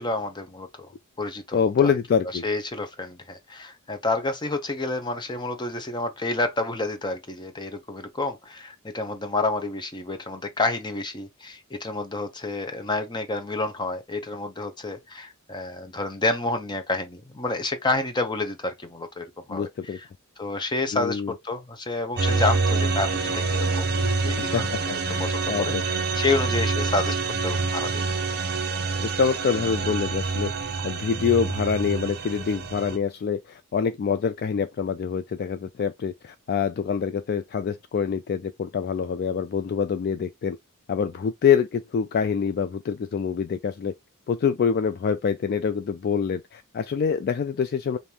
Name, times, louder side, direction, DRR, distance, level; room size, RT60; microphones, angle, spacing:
voice 1, 0.0-1.9 2.4-19.7 20.4-23.9 24.2-24.7 25.1-28.0, left 2 dB, 20° left, 0.8 m, -29 dB
voice 2, 1.5-2.4 19.5-20.0 20.9-21.3 24.4-25.8 29.0-30.5 30.8-40.6 40.9-43.9 44.3-48.0, left 6 dB, 45° left, 0.3 m, -25 dB
sound 1, 22.2-33.0, right 4 dB, 45° right, 0.7 m, -26 dB
5.1 x 2.6 x 2.9 m
head